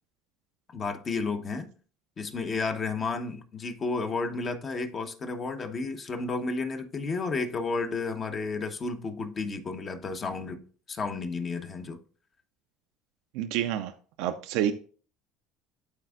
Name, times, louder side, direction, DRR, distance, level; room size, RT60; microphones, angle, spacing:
voice 1, 0.7-1.7 2.2-12.0, left 4 dB, 35° left, 1.0 m, -32 dB
voice 2, 13.3-13.9 14.2-14.7, right 11 dB, 75° right, 0.5 m, -28 dB
11.5 x 4.2 x 2.4 m
supercardioid pair, 85°, 0 cm